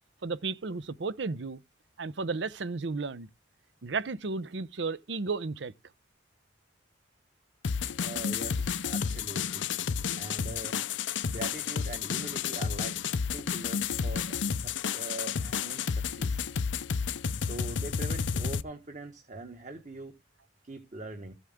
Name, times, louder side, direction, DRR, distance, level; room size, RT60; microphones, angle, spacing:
voice 1, 0.2-1.6 2.0-3.3 3.8-5.7, right 4 dB, 65° right, 0.7 m, -33 dB
sound 1, 7.6-18.6, left 6 dB, 70° left, 0.6 m, -31 dB
voice 2, 8.0-9.6 10.2-10.8 11.3-16.5 17.4-20.2 20.6-21.3, right 2 dB, 40° right, 1.5 m, -43 dB
14.0 x 8.1 x 3.6 m
head